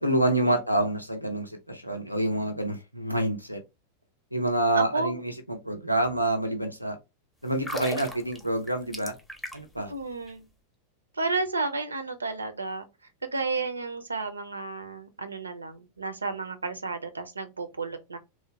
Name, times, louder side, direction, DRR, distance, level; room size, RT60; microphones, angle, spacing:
voice 1, 0.0-3.6 4.3-7.0 7.4-9.1 9.5-9.9, right 1 dB, 90° left, 0.5 m, -27 dB
voice 2, 4.7-5.2 9.9-10.5 11.1-12.9 13.2-18.2, right 3 dB, 75° right, 0.4 m, -32 dB
sound 1, 7.5-9.8 10.1-10.3, equal, 5° left, 0.5 m, -37 dB
3.0 x 2.0 x 2.7 m
figure-of-eight pair, 90°, 0 cm